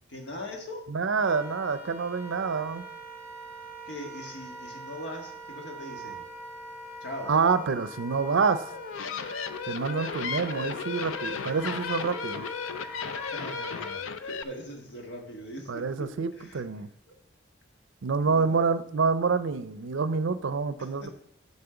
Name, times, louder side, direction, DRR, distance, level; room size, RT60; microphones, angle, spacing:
voice 1, 0.1-0.9 3.8-6.2 7.0-7.3 13.1-17.1 18.2-18.6 20.8-21.1, left 1 dB, 60° left, 1 dB, 1.6 m, -41 dB
voice 2, 0.9-2.8 7.3-8.7 9.7-12.5 15.7-16.9 18.0-21.1, right 5 dB, 75° right, 13 dB, 0.5 m, -27 dB
Wind instrument woodwind instrument, 1.2-13.9, right 1 dB, 10° right, 2.1 m, -42 dB
sound 1, 8.7-14.4, left 6 dB, 90° left, 0.5 m, -35 dB
8.7 x 4.2 x 6.9 m, 0.75 s
head